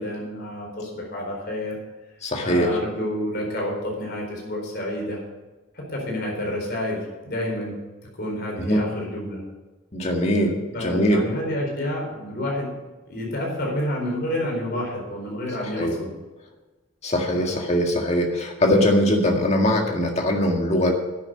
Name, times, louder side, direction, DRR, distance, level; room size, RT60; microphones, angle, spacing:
voice 1, 0.0-1.8 2.4-5.2 5.7-7.0 7.2-7.8 8.2-9.4 10.7-12.7 13.1-16.1 17.3-17.6, left 1 dB, 45° left, -1 dB, 4.4 m, -29 dB
voice 2, 2.2-2.8 8.6-8.8 9.9-11.2 15.6-15.9 17.0-20.9, equal, 30° left, 2 dB, 1.9 m, -21 dB
11.0 x 8.9 x 6.6 m, 1.2 s
head